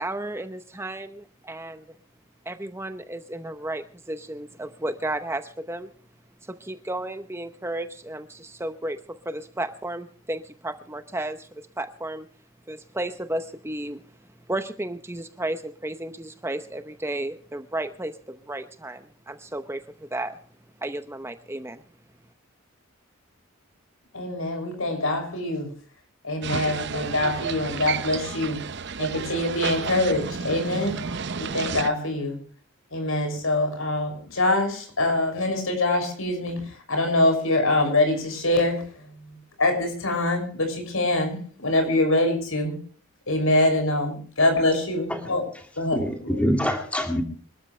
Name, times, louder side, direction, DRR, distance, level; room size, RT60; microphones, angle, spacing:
voice 1, 0.0-1.8 2.5-5.9 6.4-12.3 12.7-14.0 14.5-20.4 20.8-21.8, right 1 dB, 10° right, 9 dB, 0.7 m, -33 dB
voice 2, 24.1-25.7 26.2-28.6 29.0-31.0 31.4-32.4 32.9-42.8 43.3-45.4 45.8-46.5, left 2 dB, 70° left, 5 dB, 6.4 m, -24 dB
sound 1, 26.4-31.9, right 5 dB, 55° right, 0.8 m, -31 dB
voice 3, 45.9-47.2, equal, 5° left, 3 dB, 2.4 m, -25 dB
25.5 x 13.5 x 3.3 m, 0.43 s
head